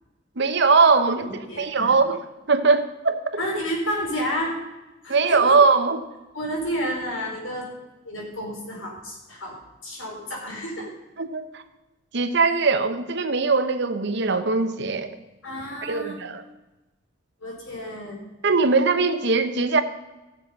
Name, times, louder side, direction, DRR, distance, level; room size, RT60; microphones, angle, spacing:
voice 1, 0.4-1.2 1.6-2.2 2.5-3.4 5.1-6.0 11.2-11.6 12.1-15.1 15.8-16.4 18.4-19.8, right 4 dB, 60° right, 9 dB, 0.9 m, -20 dB
voice 2, 0.9-2.0 3.4-4.6 5.0-5.6 6.3-7.7 8.0-10.9 15.4-16.2 17.4-18.2, equal, 85° left, -1 dB, 4.0 m, -31 dB
15.5 x 7.0 x 5.5 m, 1.1 s
head